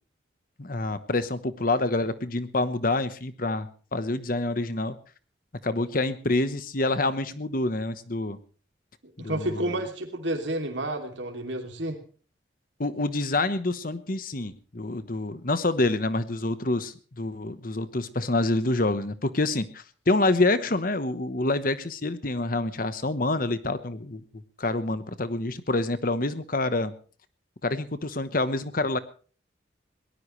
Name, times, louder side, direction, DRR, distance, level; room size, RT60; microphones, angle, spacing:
voice 1, 0.6-4.9 5.6-8.4 9.2-9.8 12.8-24.2 24.6-26.9 27.6-29.0, left 2 dB, 50° left, 12 dB, 1.1 m, -27 dB
voice 2, 9.2-12.0, right 1 dB, 85° right, 3 dB, 2.9 m, -30 dB
22.5 x 18.5 x 3.2 m, 0.40 s
head